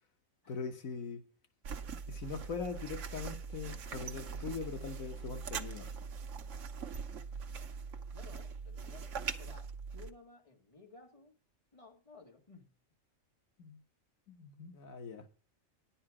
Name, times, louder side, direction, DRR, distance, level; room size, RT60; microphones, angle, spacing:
voice 1, 0.5-1.2 2.1-5.9 13.6-13.8 14.3-15.3, left 5 dB, 85° left, 1.6 m, -41 dB
sound 1, 1.6-10.1, right 5 dB, 70° right, 1.2 m, -42 dB
voice 2, 8.1-11.4 11.7-12.7, left 4 dB, 25° left, 2.0 m, -56 dB
11.0 x 8.7 x 4.8 m
omnidirectional pair, 1.4 m